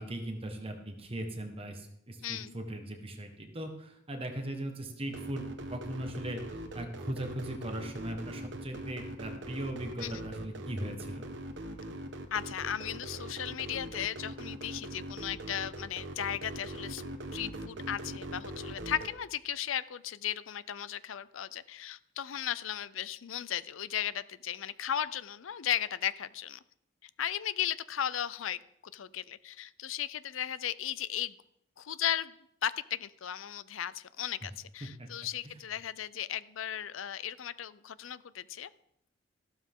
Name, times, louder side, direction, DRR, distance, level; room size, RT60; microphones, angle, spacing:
voice 1, 0.0-11.3 34.8-35.1, right 1 dB, 30° right, 4 dB, 1.4 m, -39 dB
voice 2, 2.2-2.6 10.0-10.2 12.3-17.0 17.3-26.6 27.0-28.6 28.9-31.3 31.8-32.4 32.6-38.7, left 10 dB, 85° left, 17 dB, 0.5 m, -36 dB
sound 1, 5.1-19.1, right 1 dB, 60° right, 1.3 m, -41 dB
14.0 x 12.5 x 3.7 m, 0.77 s
head